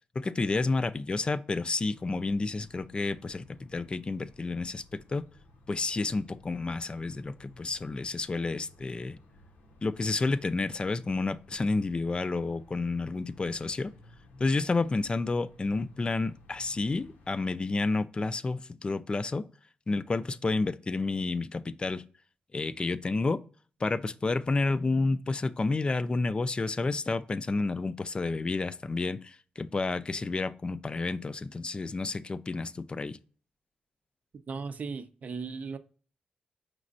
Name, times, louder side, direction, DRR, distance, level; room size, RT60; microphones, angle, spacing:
voice 1, 0.2-5.2 5.7-9.2 9.8-13.9 14.4-19.4 19.9-22.0 22.5-23.4 23.8-33.2, left 3 dB, 30° left, 0.3 m, -30 dB
sound 1, 1.7-17.3, left 2 dB, 85° left, 0.8 m, -57 dB
voice 2, 34.5-35.8, right 5 dB, 55° right, 0.5 m, -37 dB
5.1 x 3.1 x 2.5 m
supercardioid pair, 60°, 3 cm